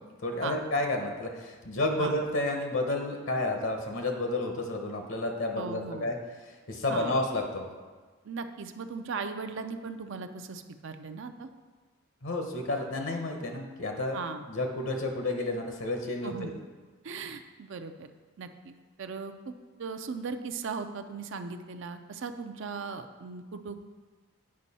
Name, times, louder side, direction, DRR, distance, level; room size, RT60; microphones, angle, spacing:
voice 1, 0.2-6.2 6.4-7.7 12.2-14.2 14.5-16.5, left 2 dB, 60° left, 3 dB, 0.9 m, -31 dB
voice 2, 5.5-6.1 6.9-7.2 8.2-11.5 14.1-14.4 16.2-16.6 17.0-18.1 18.4-19.5 19.8-23.9, right 5 dB, 60° right, 8 dB, 0.4 m, -38 dB
8.6 x 5.3 x 4.1 m, 1.4 s
head